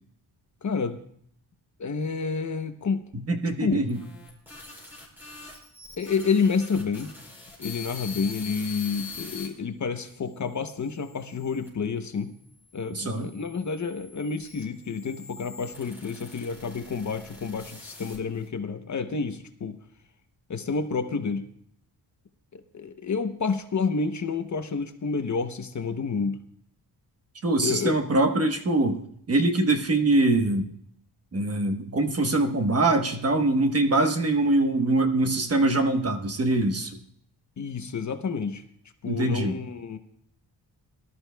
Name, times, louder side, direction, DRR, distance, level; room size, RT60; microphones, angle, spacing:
voice 1, 0.6-1.0 1.8-3.0 3.6-3.8 6.0-7.1 7.6-12.3 12.7-19.8 20.5-21.5 22.5-26.4 27.6-28.0 37.6-38.6 39.0-40.0, left 5 dB, 40° left, 8 dB, 0.8 m, -29 dB
voice 2, 3.3-4.0 12.9-13.3 27.4-30.7 31.3-36.9 39.1-39.5, right 2 dB, 35° right, 5 dB, 1.1 m, -23 dB
sound 1, 3.7-9.5 10.1-11.7 12.5-18.5, left 4 dB, 5° right, 5.4 m, -44 dB
23.0 x 12.5 x 2.2 m, 0.66 s
wide cardioid pair, 155°, 43 cm